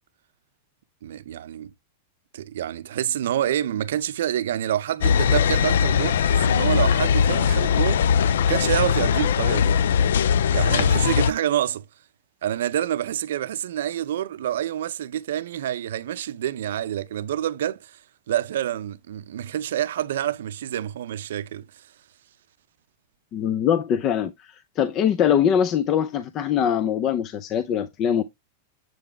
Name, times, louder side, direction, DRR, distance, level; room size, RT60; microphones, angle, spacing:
voice 1, 1.0-1.7 2.3-8.0 8.4-9.8 10.5-11.8 12.4-18.0 18.3-21.7, right 11 dB, 80° right, 0.5 m, -27 dB
sound 1, 5.0-11.3, left 7 dB, 90° left, 0.3 m, -20 dB
voice 2, 23.3-28.2, left 9 dB, 30° left, 0.5 m, -22 dB
7.7 x 3.7 x 3.4 m
supercardioid pair, 150°, 0 cm